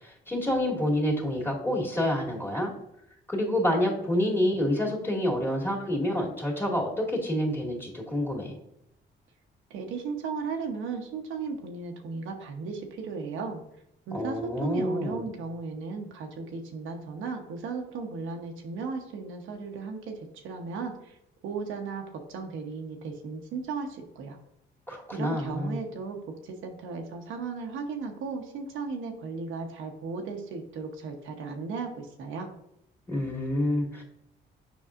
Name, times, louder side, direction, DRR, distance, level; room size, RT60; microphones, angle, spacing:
voice 1, 0.0-2.7 3.3-8.6 14.1-15.2 24.9-25.8 33.1-34.0, left 1 dB, 10° left, -2 dB, 2.1 m, -28 dB
voice 2, 9.7-13.6 14.1-21.2 21.4-24.4 25.1-32.5, right 4 dB, 85° right, 2 dB, 1.0 m, -36 dB
7.0 x 5.5 x 2.5 m, 0.78 s
cardioid pair, 90°, 20 cm